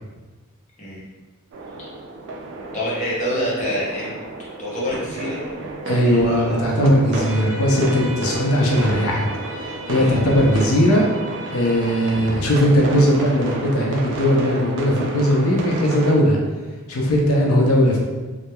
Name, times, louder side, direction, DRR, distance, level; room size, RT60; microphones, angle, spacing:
sound 1, 1.5-16.1, right 2 dB, 55° right, 0.3 m, -32 dB
voice 1, 2.7-4.1 4.6-5.4 5.9-6.8 8.6-8.9 10.0-10.2 12.0-12.1, equal, 35° left, -7 dB, 0.7 m, -27 dB
voice 2, 5.9-9.3 9.6-11.1 11.5-16.4 16.9-18.0, equal, 80° left, -1 dB, 0.5 m, -18 dB
sound 2, 7.2-12.2, equal, 25° right, 1.0 m, -36 dB
2.9 x 2.0 x 2.2 m, 1.3 s
head